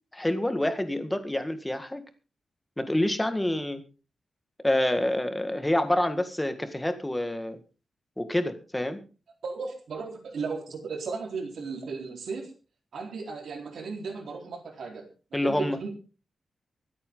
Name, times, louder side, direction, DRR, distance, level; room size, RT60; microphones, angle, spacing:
voice 1, 0.1-2.0 2.8-3.8 4.6-7.6 8.2-9.0 15.3-15.8, left 1 dB, 10° left, 8 dB, 1.8 m, -27 dB
voice 2, 9.4-12.5 12.9-15.1 15.4-16.0, right 4 dB, 85° right, 2 dB, 4.2 m, -35 dB
24.5 x 8.6 x 3.9 m, 0.34 s
wide cardioid pair, 130°, 0 cm